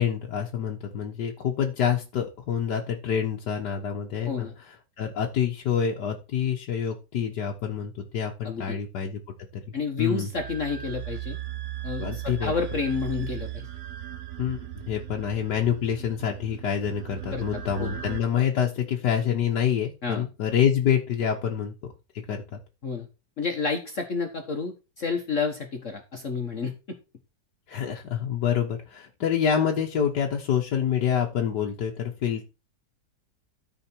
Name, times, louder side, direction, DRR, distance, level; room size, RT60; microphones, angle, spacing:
voice 1, 0.0-9.2 10.0-10.3 12.0-12.5 14.4-21.7 22.1-22.6 27.7-32.4, left 8 dB, 70° left, -1 dB, 1.7 m, -27 dB
voice 2, 8.4-8.8 9.7-11.4 11.8-13.7 17.3-17.4 17.8-18.0 20.0-20.2 22.8-23.1 23.4-26.7, left 5 dB, 50° left, 4 dB, 1.5 m, -30 dB
sound 1, 10.3-18.2, right 13 dB, 55° right, 0.9 m, -37 dB
13.5 x 5.0 x 4.5 m, 0.29 s
omnidirectional pair, 1.9 m